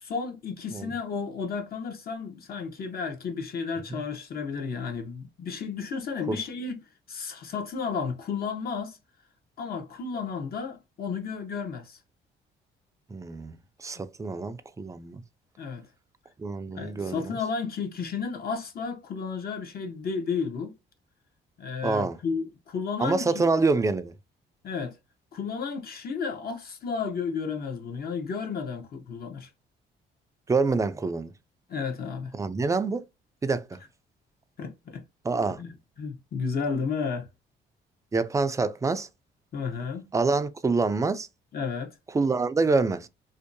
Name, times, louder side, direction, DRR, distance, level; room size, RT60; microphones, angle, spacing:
voice 1, 0.0-6.8 7.1-9.0 9.6-12.0 15.6-15.9 16.7-20.7 21.6-23.5 24.6-24.9 25.3-29.5 31.7-32.3 34.6-35.0 35.3-37.3 39.5-40.0 41.5-41.9, left 5 dB, 50° left, 0.8 m, -32 dB
voice 2, 13.1-15.2 16.4-17.4 21.8-22.2 23.0-24.1 30.5-31.3 32.3-33.0 33.4-33.6 35.2-35.6 38.1-39.1 40.1-41.3 42.1-43.1, right 3 dB, 15° right, 0.3 m, -26 dB
2.6 x 2.1 x 2.5 m
cardioid pair, 90°, 20 cm